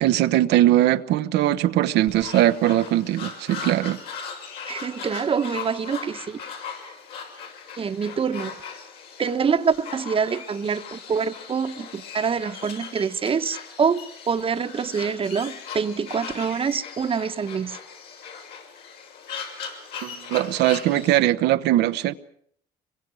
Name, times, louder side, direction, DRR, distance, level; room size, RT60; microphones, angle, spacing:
voice 1, 0.0-4.0 20.0-22.1, right 14 dB, 85° right, 1.1 m, -20 dB
sound 1, 2.1-21.2, left 6 dB, 75° left, 6.7 m, -39 dB
voice 2, 4.7-6.4 7.8-8.5 9.2-17.8, right 6 dB, 35° right, 1.2 m, -25 dB
26.5 x 23.0 x 6.4 m
cardioid pair, 110°, 17 cm